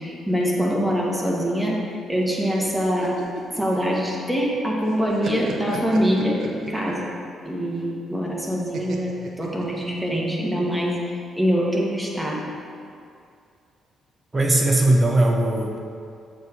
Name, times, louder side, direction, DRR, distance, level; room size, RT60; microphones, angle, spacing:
voice 1, 0.0-1.8 2.1-3.2 3.6-7.1 7.4-9.1 9.4-11.0 11.4-12.4, equal, ahead, -4 dB, 1.9 m, -24 dB
sound 1, 2.8-4.6 4.9-7.1 8.7-10.2, right 3 dB, 55° right, 0.8 m, -35 dB
voice 2, 14.3-15.8, right 1 dB, 25° right, 1 dB, 1.3 m, -19 dB
6.7 x 5.2 x 6.4 m, 2.4 s
figure-of-eight pair, 40°, 0 cm